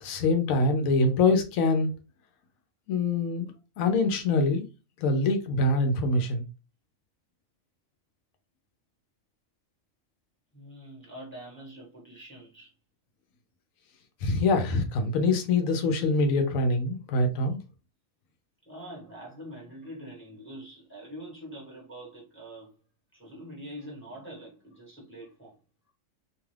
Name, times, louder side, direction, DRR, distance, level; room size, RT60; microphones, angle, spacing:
voice 1, 0.0-1.9 2.9-3.5 3.8-4.7 5.0-6.4 14.2-17.6, left 3 dB, 80° left, 1.0 m, -24 dB
voice 2, 10.5-12.7 18.6-22.7 23.1-25.6, right 1 dB, 10° left, 1.1 m, -44 dB
2.6 x 2.4 x 3.2 m
omnidirectional pair, 1.4 m